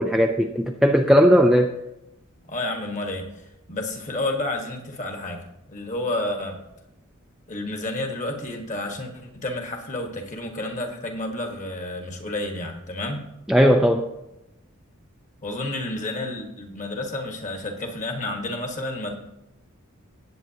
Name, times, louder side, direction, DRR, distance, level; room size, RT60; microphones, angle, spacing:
voice 1, 0.0-1.7 13.5-14.1, equal, ahead, 3 dB, 0.4 m, -17 dB
voice 2, 2.5-6.6 7.5-13.2 15.4-19.1, left 2 dB, 35° left, 3 dB, 1.5 m, -30 dB
18.0 x 8.2 x 2.9 m, 0.89 s
head